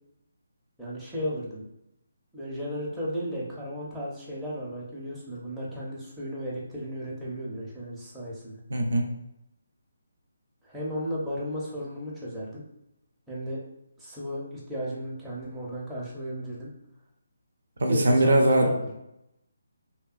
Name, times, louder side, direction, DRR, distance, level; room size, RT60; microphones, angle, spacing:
voice 1, 0.8-1.6 2.3-8.6 10.6-12.6 13.3-13.6 14.0-16.7 17.9-18.9, equal, 5° right, -8 dB, 0.6 m, -34 dB
voice 2, 8.7-9.1 17.8-18.7, right 1 dB, 65° right, 2 dB, 0.4 m, -21 dB
2.7 x 2.2 x 2.4 m, 0.85 s
figure-of-eight pair, 145°, 0 cm